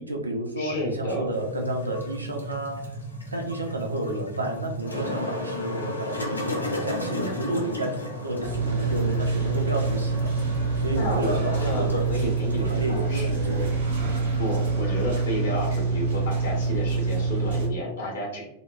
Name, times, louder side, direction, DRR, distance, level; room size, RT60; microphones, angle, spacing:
voice 1, 0.0-2.8 3.3-10.3 10.8-13.7, right 1 dB, 80° right, 2 dB, 0.4 m, -31 dB
voice 2, 0.6-1.3 10.9-13.7 14.4-18.4, equal, 60° left, -1 dB, 0.9 m, -31 dB
sound 1, 0.7-13.0, right 2 dB, 10° right, 0.4 m, -39 dB
sound 2, 1.3-14.4, left 2 dB, 80° left, 0.4 m, -36 dB
sound 3, 8.4-17.7, right 4 dB, 65° right, 0.8 m, -26 dB
2.7 x 2.1 x 2.3 m, 0.85 s
figure-of-eight pair, 90°, 0 cm